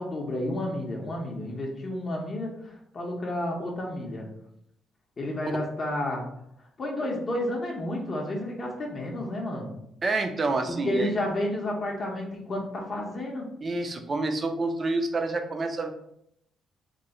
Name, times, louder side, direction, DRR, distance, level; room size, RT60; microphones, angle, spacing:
voice 1, 0.0-4.3 5.2-6.3 6.8-9.7 10.7-13.5, left 1 dB, 35° left, -1 dB, 0.6 m, -31 dB
voice 2, 10.0-11.1 13.6-15.9, right 3 dB, 30° right, 6 dB, 0.4 m, -28 dB
3.0 x 2.1 x 3.6 m, 0.73 s
cardioid pair, 130°, 0 cm